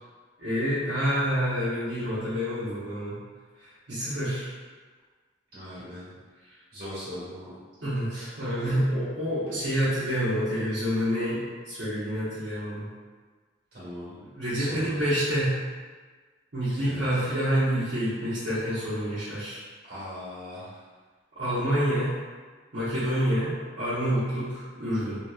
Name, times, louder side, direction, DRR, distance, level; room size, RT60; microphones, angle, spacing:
voice 1, 0.4-3.2 3.6-4.5 7.8-12.8 14.3-15.6 16.5-19.6 21.4-22.1 22.7-25.2, equal, 75° right, -14 dB, 0.9 m, -27 dB
voice 2, 5.5-6.1 6.7-7.6 13.7-14.2 14.6-15.1 16.8-17.1 19.9-20.8, equal, 55° right, -10 dB, 1.5 m, -39 dB
2.9 x 2.8 x 2.3 m, 1.4 s
head